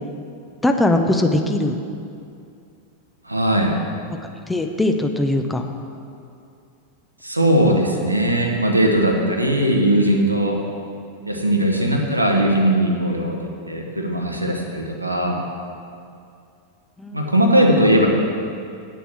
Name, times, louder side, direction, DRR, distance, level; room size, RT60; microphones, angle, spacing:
voice 1, 0.6-1.8 4.1-4.2 4.5-5.7 17.0-17.3, left 1 dB, 5° left, 5 dB, 0.7 m, -20 dB
voice 2, 3.3-3.7 7.2-10.6 11.2-15.4 17.1-18.1, right 1 dB, 85° right, 0 dB, 1.2 m, -19 dB
8.6 x 6.9 x 7.5 m, 2.5 s
figure-of-eight pair, 90°, 0 cm